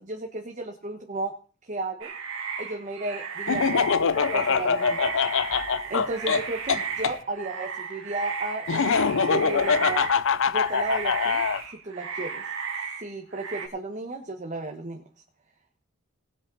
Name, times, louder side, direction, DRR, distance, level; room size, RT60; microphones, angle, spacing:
voice 1, 0.0-1.4 1.6-2.1 2.6-5.0 5.9-10.1 10.5-12.4 13.0-15.0, right 2 dB, 35° right, 3 dB, 1.3 m, -34 dB
sound 1, 2.0-10.3 10.6-13.7, right 6 dB, 65° right, 2.3 m, -35 dB
Laughter, 3.5-7.1 8.7-11.6, left 6 dB, 65° left, 0.6 m, -24 dB
19.0 x 7.6 x 4.0 m, 0.38 s
head